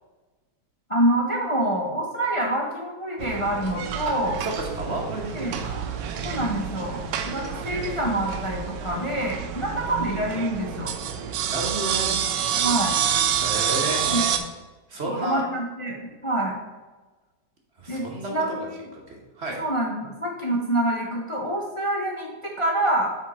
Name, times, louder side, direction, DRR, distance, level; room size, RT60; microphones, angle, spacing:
voice 1, 0.9-4.4 5.3-5.6 6.2-7.0 7.3-10.9 12.6-12.9 14.0-14.2 15.0-16.6 17.9-18.8 19.6-23.1, right 1 dB, 40° left, -1 dB, 0.4 m, -26 dB
sound 1, 3.2-14.4, right 8 dB, 75° right, 1.2 m, -28 dB
voice 2, 4.4-5.8 6.0-6.2 11.5-12.2 13.4-14.4 14.9-15.4 17.8-18.6 18.9-19.6, right 2 dB, 40° right, 0 dB, 1.2 m, -32 dB
7.4 x 4.4 x 4.2 m, 1.2 s
omnidirectional pair, 2.0 m